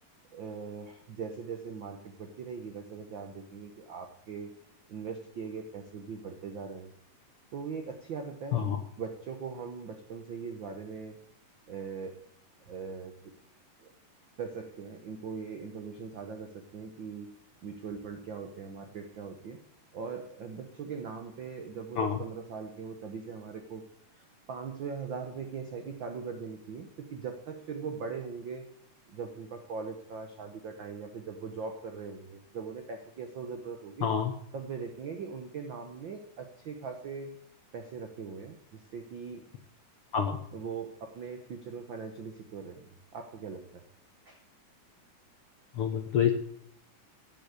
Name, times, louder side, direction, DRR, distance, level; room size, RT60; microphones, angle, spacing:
voice 1, 0.3-4.5 4.9-6.9 7.5-11.2 11.7-12.1 12.6-13.1 13.8-13.9 14.4-17.3 17.6-19.6 19.9-23.8 24.1-28.6 29.1-34.1 34.5-37.3 37.7-39.4 40.5-43.8 44.3-44.4, right 5 dB, 85° right, 6 dB, 1.0 m, -40 dB
voice 2, 34.0-34.3 40.1-40.4 45.7-46.3, left 8 dB, 70° left, 5 dB, 1.4 m, -27 dB
11.5 x 8.3 x 8.2 m, 0.67 s
omnidirectional pair, 3.7 m